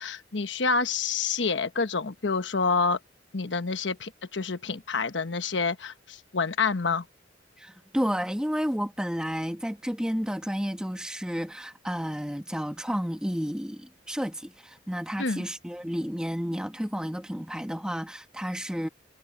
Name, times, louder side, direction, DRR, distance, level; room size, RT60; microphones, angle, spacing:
voice 1, 0.0-3.0 3.3-7.0 15.2-15.4, left 4 dB, 85° left, 1.2 m, -28 dB
voice 2, 7.6-18.9, equal, 5° right, 2.2 m, -31 dB
head